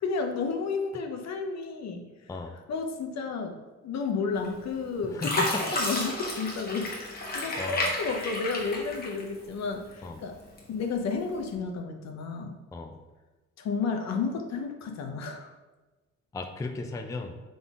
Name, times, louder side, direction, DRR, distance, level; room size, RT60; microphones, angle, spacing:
voice 1, 0.0-2.1 2.7-3.5 3.8-6.9 7.3-10.4 10.7-12.6 13.6-15.5, left 4 dB, 60° left, 5 dB, 0.7 m, -32 dB
Fill (with liquid), 4.4-4.8 5.2-9.6 10.0-10.8 11.4-11.5, left 1 dB, 30° left, 1.2 m, -32 dB
voice 2, 5.1-5.8 6.1-6.2 7.6-7.9 10.0-10.2 12.7-13.0 16.3-17.4, left 3 dB, 10° left, 5 dB, 0.3 m, -36 dB
3.8 x 3.8 x 3.5 m, 1.2 s
cardioid pair, 90°, 30 cm